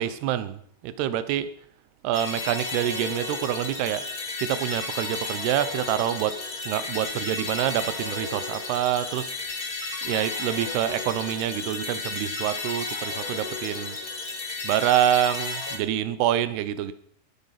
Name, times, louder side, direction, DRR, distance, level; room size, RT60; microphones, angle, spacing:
voice 1, 0.0-1.5 2.0-4.0 4.4-6.4 6.7-9.3 10.0-14.0 14.6-16.9, right 11 dB, 80° right, 13 dB, 2.4 m, -26 dB
sound 1, 2.1-15.8, left 3 dB, 45° left, 1.1 m, -33 dB
20.0 x 11.0 x 5.9 m, 0.63 s
omnidirectional pair, 5.9 m